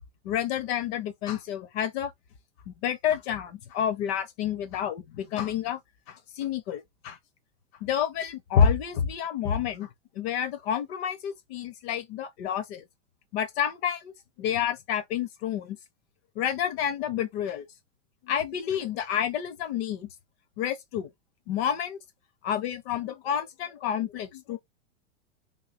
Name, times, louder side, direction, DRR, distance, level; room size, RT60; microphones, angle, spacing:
voice 1, 0.2-2.1 2.7-5.8 6.1-7.2 7.8-9.9 10.1-12.8 13.3-14.1 14.4-15.8 16.3-17.7 18.2-20.1 20.6-21.1 21.5-22.0 22.4-24.6, left 8 dB, 55° left, 1.2 m, -29 dB
3.7 x 2.8 x 4.3 m
hypercardioid pair, 110°, 37 cm